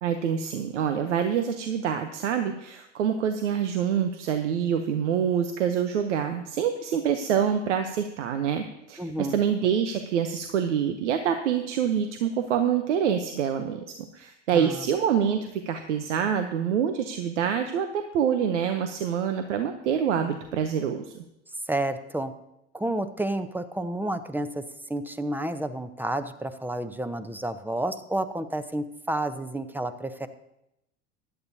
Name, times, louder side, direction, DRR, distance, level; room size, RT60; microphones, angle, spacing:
voice 1, 0.0-13.8 14.1-21.1, right 8 dB, 85° right, 8 dB, 0.8 m, -26 dB
voice 2, 9.0-9.4 14.5-14.8 21.7-22.3 22.7-24.6 24.9-30.3, right 1 dB, 5° right, 10 dB, 0.7 m, -30 dB
15.5 x 11.0 x 2.7 m, 0.85 s
hypercardioid pair, 85°, 35 cm